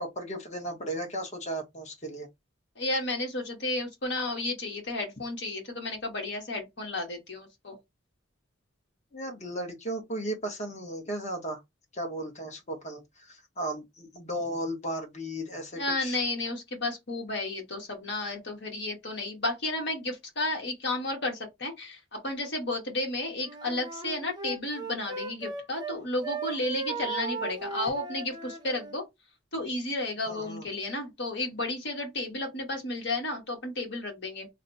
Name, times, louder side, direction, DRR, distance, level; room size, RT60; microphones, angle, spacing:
voice 1, 0.0-2.3 9.1-11.6 11.9-16.2 30.3-30.6, right 1 dB, 35° left, 1.1 m, -35 dB
voice 2, 2.8-7.8 15.7-29.1 29.5-34.5, left 2 dB, 60° left, 1.3 m, -32 dB
Wind instrument woodwind instrument, 23.4-26.0 26.2-29.0, right 4 dB, 20° right, 0.6 m, -37 dB
3.1 x 2.1 x 3.9 m
head